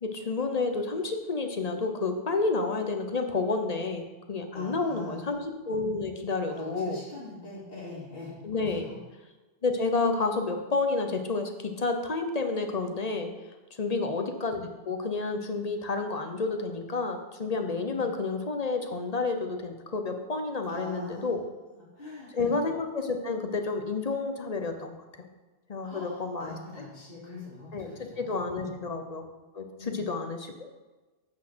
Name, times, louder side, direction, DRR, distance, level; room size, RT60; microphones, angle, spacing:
voice 1, 0.0-7.0 8.4-8.9 9.6-13.3 13.8-21.4 22.3-25.0 25.7-26.6 27.7-29.3 29.5-30.7, left 3 dB, 40° left, 5 dB, 0.9 m, -30 dB
voice 2, 4.5-5.2 6.5-9.0 13.8-14.1 17.9-18.1 20.7-21.3 21.9-22.5 25.8-28.8 29.8-30.1, left 2 dB, 60° left, -8 dB, 2.8 m, -43 dB
8.2 x 6.1 x 6.2 m, 1.2 s
omnidirectional pair, 1.1 m